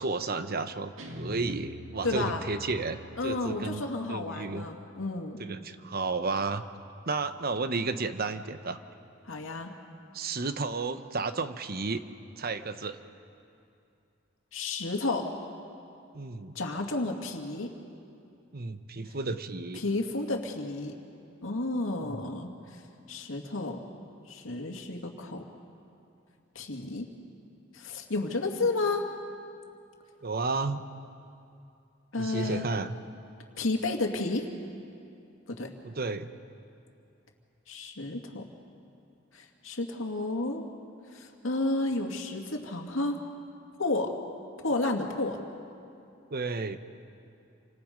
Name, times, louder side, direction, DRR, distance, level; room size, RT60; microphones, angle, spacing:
voice 1, 0.0-4.7 5.4-6.6 7.1-8.8 10.1-12.0 12.4-13.0 16.1-16.5 18.5-19.8 22.0-22.2 30.2-30.8 32.2-33.0 35.8-36.3 46.3-46.8, right 3 dB, 50° right, 10 dB, 1.0 m, -32 dB
Guitar, 1.0-4.2, left 1 dB, 85° right, 1.9 m, -45 dB
voice 2, 2.0-2.4 3.2-5.4 9.3-9.7 14.5-15.3 16.5-17.7 19.8-20.9 21.4-22.8 23.1-23.8 24.3-25.4 26.6-27.1 27.7-29.1 32.1-32.7 33.6-34.5 35.5-35.7 37.7-38.5 39.3-40.7 41.1-43.2 43.8-44.1 44.6-45.4, left 2 dB, 85° left, 3 dB, 2.2 m, -31 dB
28.5 x 25.5 x 5.3 m, 2.6 s
head